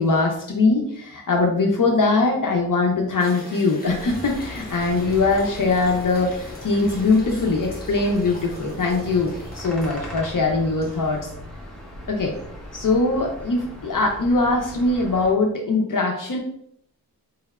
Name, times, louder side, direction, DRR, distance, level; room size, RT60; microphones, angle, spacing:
voice 1, 0.0-11.3 12.1-12.3 12.7-16.4, left 3 dB, 60° left, 1 dB, 0.7 m, -21 dB
sound 1, 3.2-11.2, left 1 dB, 25° left, 1.1 m, -41 dB
sound 2, 3.8-15.3, equal, ahead, 1.1 m, -38 dB
4.8 x 3.4 x 2.3 m, 0.68 s
wide cardioid pair, 115°, 37 cm